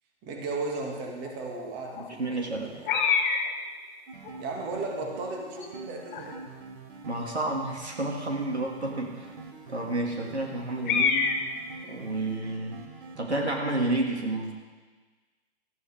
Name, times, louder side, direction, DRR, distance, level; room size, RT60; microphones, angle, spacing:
voice 1, 0.2-2.9 4.4-6.4, right 3 dB, 30° right, 0 dB, 2.5 m, -35 dB
sound 1, 1.2-1.4 1.6-1.7 1.9-2.6 2.9-3.6 4.3-4.4 4.9-5.2 5.6-5.7 6.1-6.3 7.4-7.5 10.9-11.5, left 5 dB, 50° left, 1.7 m, -27 dB
voice 2, 2.0-2.7 7.1-9.3 9.7-11.3 11.8-12.8 13.2-14.5, right 2 dB, 85° right, 0 dB, 2.6 m, -30 dB
sound 2, 4.1-13.2, right 4 dB, 50° right, 2.0 m, -45 dB
17.0 x 14.0 x 3.7 m, 1.3 s
figure-of-eight pair, 115°, 32 cm